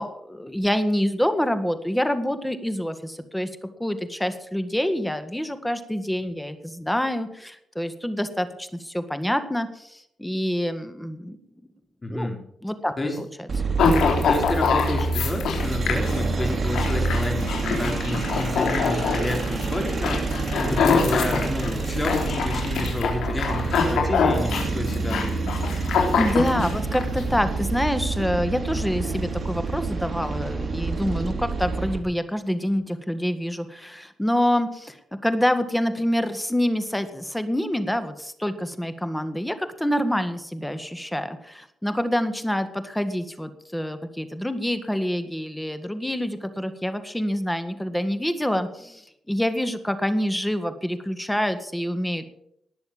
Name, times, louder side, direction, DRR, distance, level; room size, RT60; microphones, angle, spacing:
voice 1, 0.0-11.4 12.1-12.3 12.6-13.3 26.2-35.0 35.2-52.3, equal, 5° left, 10 dB, 1.7 m, -26 dB
voice 2, 12.0-12.4 13.0-13.2 14.1-20.2 20.5-25.5, left 1 dB, 25° left, 2 dB, 4.5 m, -30 dB
sound 1, 13.5-32.0, right 3 dB, 40° right, 3.2 m, -27 dB
sound 2, 13.8-27.2, left 5 dB, 85° left, 3.6 m, -25 dB
19.5 x 7.0 x 7.2 m, 0.75 s
cardioid pair, 85°, 0 cm